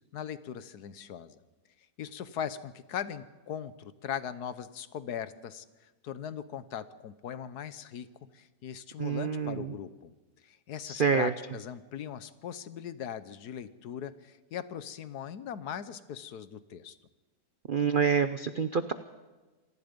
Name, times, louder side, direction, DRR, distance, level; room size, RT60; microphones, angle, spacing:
voice 1, 0.1-1.4 2.0-8.1 8.3-10.1 10.4-17.0, left 9 dB, 65° left, 14 dB, 1.4 m, -39 dB
voice 2, 9.0-9.7 10.9-11.3 17.7-18.9, right 6 dB, 80° right, 11 dB, 0.4 m, -27 dB
27.0 x 18.5 x 5.2 m, 1.2 s
omnidirectional pair, 1.9 m